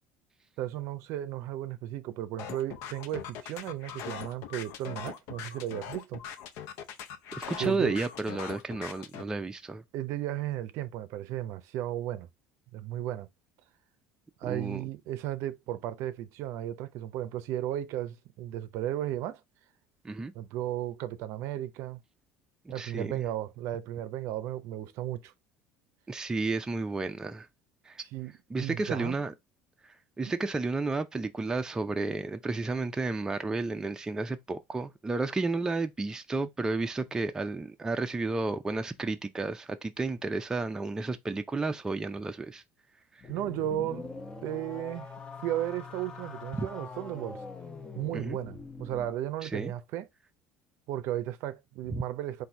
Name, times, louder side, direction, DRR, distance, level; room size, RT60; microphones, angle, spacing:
voice 1, 0.6-6.2 7.6-8.0 9.9-12.3 12.7-13.3 14.4-19.4 20.3-22.0 22.7-25.3 28.0-29.2 43.3-44.1 44.4-45.1 45.4-47.4 48.0-50.1 50.9-52.5, right 13 dB, 65° right, 0.5 m, -34 dB
sound 1, 2.4-9.2, left 8 dB, 70° left, 0.6 m, -41 dB
voice 2, 7.3-9.8 14.5-14.8 20.0-20.3 22.8-23.3 26.1-27.5 27.9-28.0 28.5-29.3 30.2-42.6 46.5-46.7 48.1-48.4 49.4-49.7 51.9-52.0, right 3 dB, 15° right, 0.5 m, -32 dB
sound 2, 43.2-49.1, left 4 dB, 15° left, 0.7 m, -43 dB
4.0 x 2.6 x 4.5 m
supercardioid pair, 115°, 5 cm